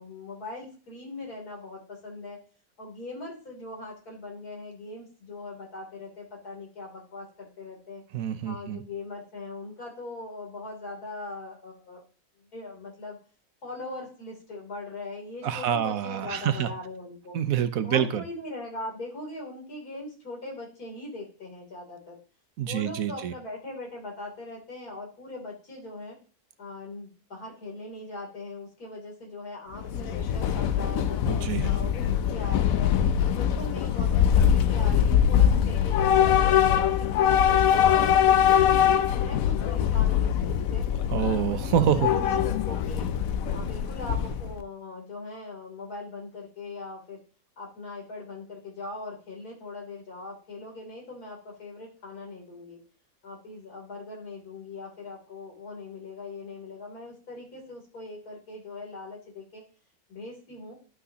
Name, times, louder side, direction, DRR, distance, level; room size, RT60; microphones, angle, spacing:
voice 1, 0.0-2.4 2.8-8.0 8.5-12.0 12.5-13.2 13.6-17.3 17.8-22.2 22.7-26.2 26.6-32.0 32.3-32.9 33.3-38.7 39.1-40.8 41.7-43.1 43.5-47.2 47.6-52.8 53.2-59.6 60.1-60.8, left 2 dB, 90° left, -1 dB, 3.6 m, -40 dB
voice 2, 8.1-8.8 15.4-16.7 17.3-18.2 22.6-23.3 31.2-31.7 41.1-42.1, right 9 dB, 70° right, 11 dB, 1.1 m, -26 dB
Train / Subway metro underground, 29.8-44.6, left 9 dB, 70° left, 1.1 m, -23 dB
11.0 x 6.0 x 2.8 m, 0.40 s
omnidirectional pair, 1.6 m